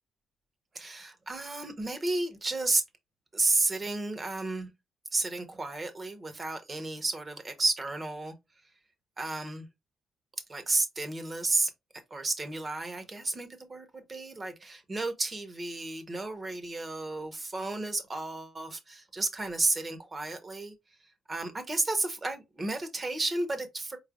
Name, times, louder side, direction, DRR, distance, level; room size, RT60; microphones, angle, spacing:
voice 1, 0.7-2.8 3.3-4.7 5.1-8.3 9.2-9.7 10.5-11.7 12.1-20.7 21.3-24.0, right 2 dB, 35° right, 1.2 m, -32 dB
4.3 x 3.3 x 2.5 m
supercardioid pair, 60°, 0 cm